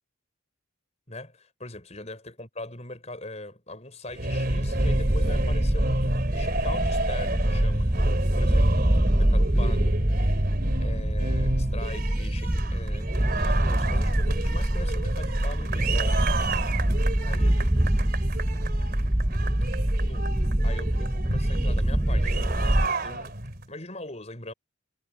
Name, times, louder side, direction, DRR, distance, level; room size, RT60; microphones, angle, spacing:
voice 1, 1.1-7.9 8.2-8.9 9.1-10.0 10.8-16.2 17.2-17.7 20.0-23.4 23.7-24.5, left 2 dB, 30° left, 6.3 m, -41 dB
sound 1, 4.1-23.6, right 2 dB, 45° right, 3.8 m, -31 dB
sound 2, 4.5-22.9, right 1 dB, 15° right, 0.6 m, -25 dB
head